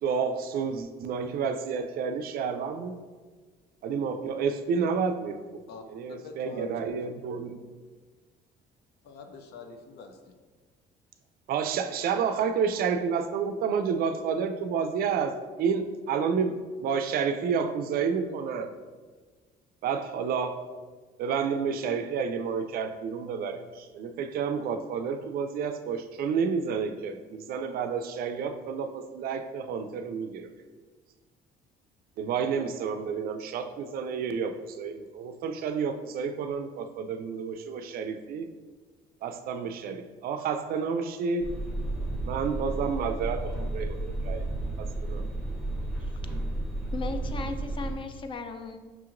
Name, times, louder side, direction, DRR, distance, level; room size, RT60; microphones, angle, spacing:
voice 1, 0.0-2.9 3.8-5.4 5.9-7.6 11.5-18.7 19.8-20.6 21.2-30.5 32.2-38.5 39.2-41.5 42.3-44.4 44.8-45.2, right 6 dB, 60° right, 8 dB, 0.4 m, -30 dB
voice 2, 6.2-6.9 9.0-10.3, left 4 dB, 75° left, 5 dB, 0.6 m, -45 dB
sound 1, 41.4-47.9, right 2 dB, ahead, 0.8 m, -32 dB
voice 3, 46.9-48.8, left 3 dB, 30° left, 7 dB, 0.4 m, -36 dB
5.7 x 2.9 x 2.5 m, 1.4 s
cardioid pair, 110°, 17 cm